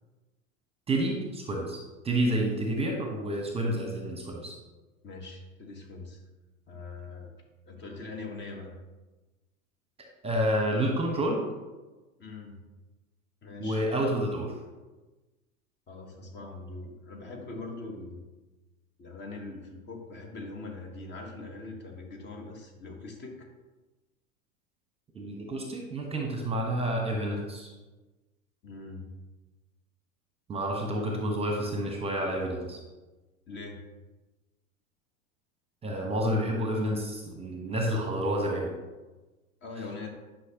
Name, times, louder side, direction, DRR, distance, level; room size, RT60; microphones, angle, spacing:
voice 1, 0.9-4.5 10.2-11.4 13.6-14.6 25.1-27.7 30.5-32.8 35.8-38.7, right 1 dB, 15° right, 1 dB, 1.2 m, -29 dB
voice 2, 5.0-6.2 6.7-7.3 7.7-8.7 12.2-12.6 13.4-13.8 15.9-18.2 19.0-23.5 28.6-29.1 33.5-33.8 39.6-40.1, left 3 dB, 25° left, 2 dB, 1.3 m, -42 dB
9.8 x 5.7 x 2.9 m, 1.2 s
figure-of-eight pair, 90°, 42 cm